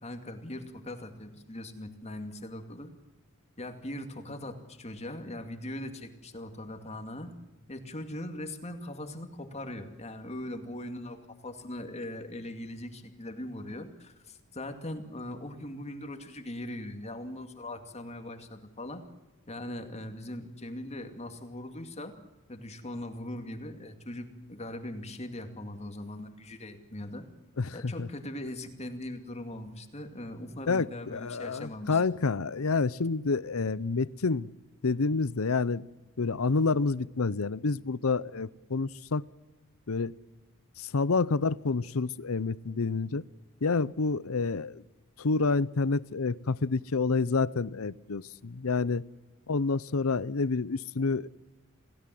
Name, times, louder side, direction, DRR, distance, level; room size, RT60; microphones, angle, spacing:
voice 1, 0.0-2.9 3.6-7.3 7.7-11.2 11.4-19.0 19.5-22.1 22.5-27.3 27.7-32.0, left 1 dB, 30° left, 6 dB, 2.4 m, -40 dB
voice 2, 27.6-28.1 30.7-34.5 34.8-35.8 36.2-39.2 39.9-40.1 40.8-43.2 43.6-44.8 45.2-49.0 49.5-51.3, left 4 dB, 90° left, 20 dB, 0.7 m, -28 dB
28.5 x 17.0 x 7.7 m, 1.1 s
head